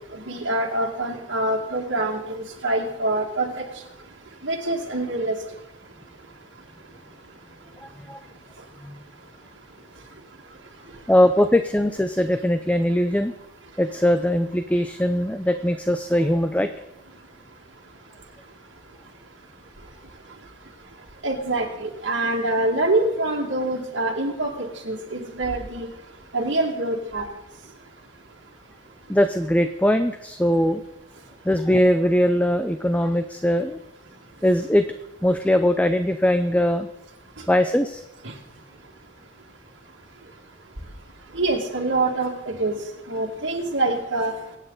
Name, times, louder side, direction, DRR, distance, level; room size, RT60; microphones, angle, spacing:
voice 1, 0.1-3.6 4.4-5.4 21.2-25.9 26.3-27.2 38.2-38.3 41.3-42.8 43.1-44.3, right 2 dB, 70° right, -3 dB, 2.2 m, -25 dB
voice 2, 11.1-13.3 13.8-16.7 29.1-30.8 31.5-33.8 34.4-34.9 35.2-36.9 37.5-38.0, left 1 dB, 5° left, 9 dB, 0.5 m, -21 dB
24.0 x 9.1 x 4.0 m, 0.93 s
head